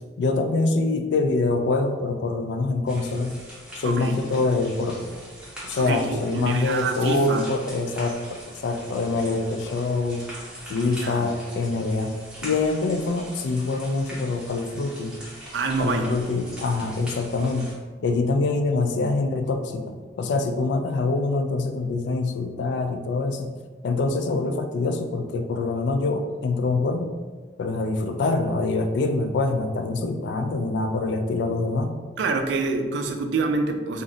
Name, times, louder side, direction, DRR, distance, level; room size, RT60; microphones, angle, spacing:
voice 1, 0.2-3.3 3.7-5.1 5.6-10.2 10.7-12.1 12.4-15.2 15.8-17.7 18.0-23.5 23.8-27.1 27.6-32.0, left 3 dB, 75° left, 6 dB, 0.3 m, -25 dB
sound 1, 2.9-17.7, right 1 dB, 5° right, 0.6 m, -42 dB
voice 2, 3.8-4.2 5.8-7.5 11.0-11.3 15.5-16.1 32.2-34.0, right 3 dB, 80° right, 5 dB, 0.3 m, -26 dB
2.5 x 2.1 x 3.7 m, 1.5 s
head